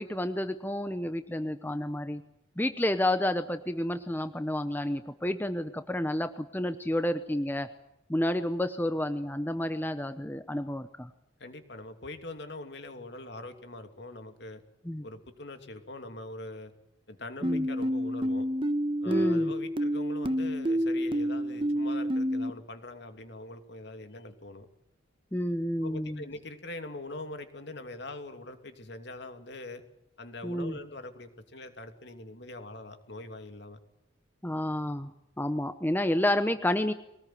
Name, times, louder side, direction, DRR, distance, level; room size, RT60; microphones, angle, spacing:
voice 1, 0.0-2.2 2.6-7.7 8.1-11.1 14.9-15.0 17.4-17.7 19.0-19.5 25.3-26.2 30.4-30.8 34.4-35.1 35.4-36.9, left 1 dB, 10° left, 9 dB, 0.8 m, -30 dB
voice 2, 11.4-14.6 15.0-16.7 17.1-18.5 19.0-24.7 25.8-29.8 30.2-33.8, left 2 dB, 60° left, 7 dB, 2.8 m, -43 dB
sound 1, 17.4-22.5, equal, 25° right, 1.1 m, -28 dB
23.0 x 19.5 x 9.4 m, 0.85 s
head